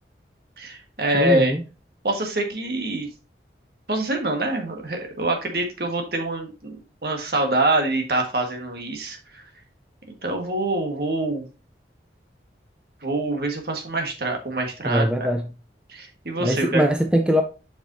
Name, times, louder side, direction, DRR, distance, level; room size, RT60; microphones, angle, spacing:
voice 1, 0.6-1.5 2.0-3.1 3.9-6.8 7.0-9.4 10.2-11.4 13.0-15.0 15.9-16.8, right 2 dB, 60° right, 1.7 m, -25 dB
voice 2, 1.1-1.6 14.8-15.5 16.4-17.4, equal, 5° right, 0.6 m, -21 dB
7.7 x 5.3 x 2.7 m
head